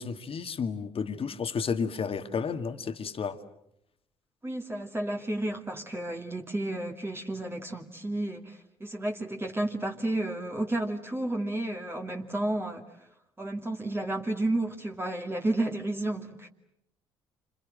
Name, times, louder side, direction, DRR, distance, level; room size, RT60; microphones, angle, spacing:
voice 1, 0.0-3.4, left 6 dB, 45° left, 9 dB, 2.0 m, -32 dB
voice 2, 4.4-12.9 13.4-16.5, right 1 dB, 15° right, 2 dB, 2.4 m, -32 dB
28.5 x 27.0 x 7.6 m, 0.77 s
hypercardioid pair, 50°, 14 cm